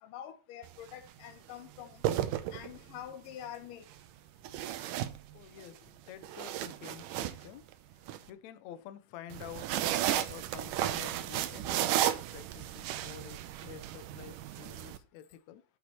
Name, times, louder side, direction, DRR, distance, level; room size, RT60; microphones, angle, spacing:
voice 1, 0.0-2.1 2.5-3.9, left 10 dB, 85° left, 2.7 m, -46 dB
sound 1, 0.6-0.9 1.8-3.0 4.4-5.7 6.1-8.2 9.3-15.0, right 12 dB, 80° right, 2.3 m, -34 dB
voice 2, 5.3-7.7 8.3-15.6, left 10 dB, 70° left, 2.0 m, -49 dB
12.5 x 7.4 x 4.3 m
omnidirectional pair, 3.7 m